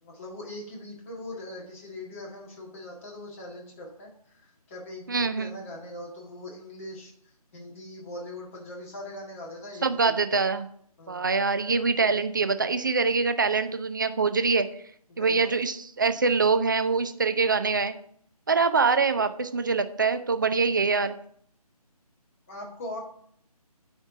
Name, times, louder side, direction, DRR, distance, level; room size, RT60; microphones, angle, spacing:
voice 1, 0.0-10.4 11.0-11.2 15.1-15.5 22.5-23.0, left 1 dB, 20° left, -1 dB, 1.8 m, -41 dB
voice 2, 5.1-5.5 9.8-10.6 11.1-14.7 15.2-17.9 18.5-21.2, right 4 dB, 30° right, 10 dB, 0.5 m, -24 dB
9.2 x 4.5 x 6.7 m, 0.65 s
figure-of-eight pair, 150°, 20 cm